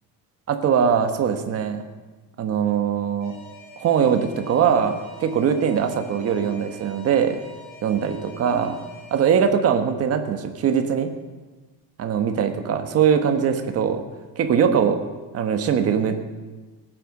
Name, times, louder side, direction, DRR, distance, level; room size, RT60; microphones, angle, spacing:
voice 1, 0.5-1.8 2.4-3.4 3.8-7.4 7.8-8.8 9.1-11.1 12.0-14.0 14.4-15.0 15.3-16.3, right 7 dB, 35° right, 7 dB, 1.3 m, -21 dB
Alarm, 3.2-9.4, left 2 dB, 45° left, 5.6 m, -45 dB
18.0 x 9.2 x 6.6 m, 1.3 s
cardioid pair, 175°, 41 cm